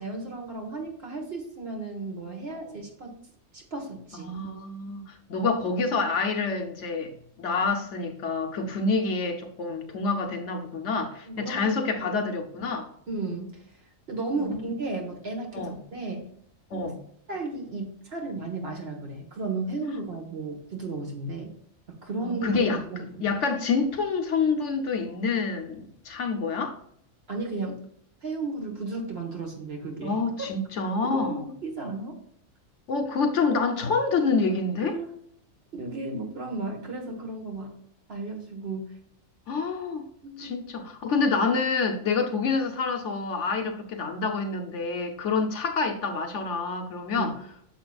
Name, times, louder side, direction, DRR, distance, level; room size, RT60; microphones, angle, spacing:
voice 1, 0.0-3.2 3.5-4.3 11.3-11.7 12.0-12.2 13.1-13.6 14.1-16.2 16.7-16.9 17.3-21.5 22.0-22.6 22.9-23.0 27.3-27.8 28.2-30.2 31.0-32.2 34.8-35.1 35.7-37.7 38.1-38.9 40.2-40.6 47.2-47.4, right 3 dB, 50° right, 1.7 m, -34 dB
voice 2, 4.1-7.1 7.4-12.9 14.4-14.6 15.5-15.8 16.7-17.0 22.2-22.8 23.2-26.8 30.0-31.4 32.9-35.0 39.5-40.1 40.4-47.3, left 4 dB, 65° left, 1.1 m, -27 dB
9.5 x 6.7 x 2.4 m
omnidirectional pair, 1.4 m